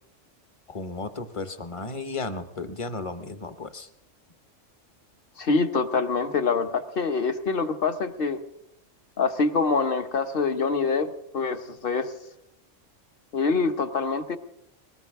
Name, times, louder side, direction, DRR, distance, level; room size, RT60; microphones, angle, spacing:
voice 1, 0.7-3.9, left 3 dB, 30° left, 10 dB, 0.8 m, -34 dB
voice 2, 5.4-8.4 9.2-12.1 13.3-14.4, left 4 dB, 50° left, 8 dB, 1.1 m, -25 dB
21.5 x 18.5 x 3.6 m, 0.80 s
omnidirectional pair, 1.3 m